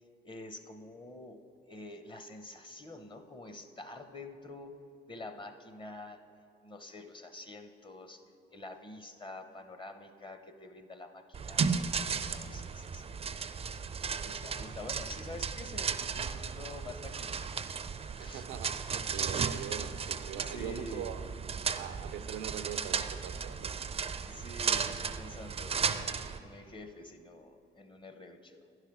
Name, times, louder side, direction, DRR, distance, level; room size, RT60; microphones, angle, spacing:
voice 1, 0.2-1.4 1.7-4.8 5.1-6.2 6.6-8.2 8.5-11.7 12.2-13.9 14.2-17.5 18.1-18.4 20.3-21.2 24.2-28.6, left 2 dB, 25° left, 7 dB, 0.7 m, -47 dB
sound 1, 11.3-26.4, right 6 dB, 30° right, 0.4 m, -35 dB
voice 2, 18.2-18.9 19.1-21.2 21.7-23.9, right 9 dB, 85° right, 11 dB, 0.4 m, -42 dB
10.5 x 4.9 x 6.0 m, 2.6 s
cardioid pair, 90°, 20 cm